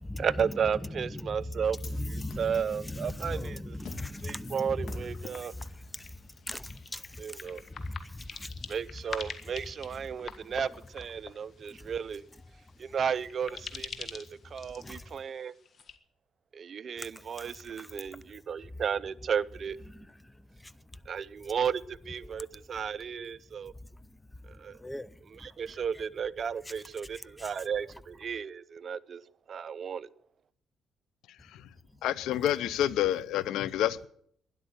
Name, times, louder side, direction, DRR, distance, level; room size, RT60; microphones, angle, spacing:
voice 1, 0.2-3.8 4.2-5.5 7.2-7.6 8.7-12.2 12.8-15.5 16.5-19.8 21.1-23.7 24.5-24.8 25.2-29.2 29.5-30.1, right 7 dB, 50° right, 0.6 m, -34 dB
sound 1, 1.8-8.0, left 4 dB, 70° left, 2.8 m, -52 dB
voice 2, 2.1-4.6 6.5-7.0 7.8-8.5 14.8-15.0 17.0-17.1 24.8-25.1, left 1 dB, 10° left, 0.6 m, -38 dB
sound 2, 5.0-16.0, left 5 dB, 50° left, 1.7 m, -46 dB
voice 3, 32.0-34.1, left 11 dB, 85° left, 0.6 m, -28 dB
12.0 x 11.0 x 8.1 m
cardioid pair, 90°, 0 cm